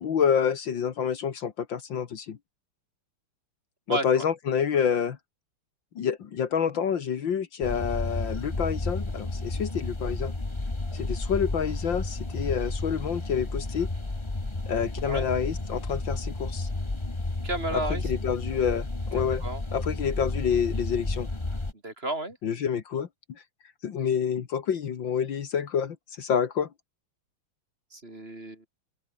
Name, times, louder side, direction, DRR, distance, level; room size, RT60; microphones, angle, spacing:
voice 1, 0.0-2.4 3.9-5.2 6.0-10.3 10.9-13.9 14.7-16.7 17.7-19.4 19.7-21.3 22.4-23.1 23.8-26.7, left 7 dB, 60° left, 2.1 m, -28 dB
voice 2, 3.9-4.2 15.0-15.3 17.4-18.0 19.4-19.6 21.8-22.4 27.9-28.6, right 2 dB, 25° right, 3.4 m, -32 dB
sound 1, 7.6-21.7, left 2 dB, 15° left, 1.6 m, -32 dB
open air
omnidirectional pair, 2.3 m